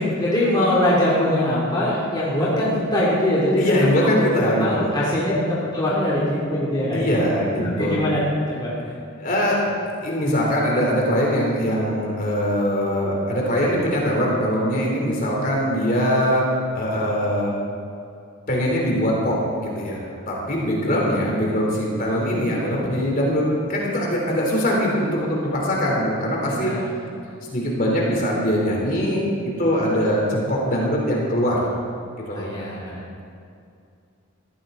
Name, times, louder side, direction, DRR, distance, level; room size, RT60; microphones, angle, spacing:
voice 1, 0.0-3.6 4.2-7.1 7.6-8.7 26.5-26.8 32.3-33.0, left 1 dB, 20° left, -8 dB, 3.0 m, -22 dB
voice 2, 3.6-4.9 6.9-8.0 9.2-9.6 10.0-16.4 16.7-17.5 18.5-23.4 23.7-26.7 27.5-31.6 32.2-32.5, equal, 40° left, -3 dB, 3.6 m, -22 dB
20.0 x 15.0 x 4.0 m, 2.4 s
head